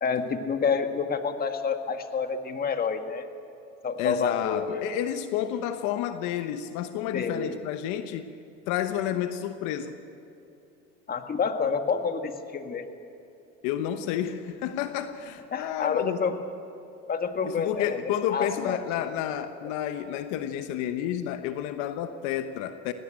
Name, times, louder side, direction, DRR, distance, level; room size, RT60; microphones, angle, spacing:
voice 1, 0.0-3.3 3.8-4.8 7.1-7.5 11.1-12.9 15.5-16.3 17.1-18.0 18.3-19.1, left 5 dB, 30° left, 6 dB, 1.7 m, -28 dB
voice 2, 4.0-8.3 8.7-10.0 13.6-16.2 17.4-22.9, left 10 dB, 75° left, 9 dB, 1.1 m, -30 dB
18.5 x 17.5 x 8.9 m, 2.7 s
supercardioid pair, 110°, 30 cm